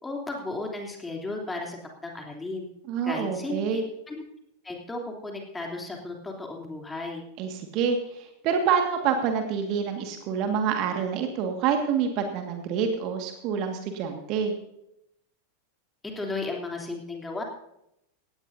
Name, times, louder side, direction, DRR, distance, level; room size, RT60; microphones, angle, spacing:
voice 1, 0.0-2.6 3.0-4.2 4.6-7.2 16.1-17.4, left 2 dB, 10° left, 1 dB, 3.1 m, -34 dB
voice 2, 2.9-3.8 7.4-14.5, right 7 dB, 40° right, 5 dB, 1.8 m, -27 dB
17.5 x 17.0 x 2.7 m, 0.81 s
figure-of-eight pair, 90°, 0 cm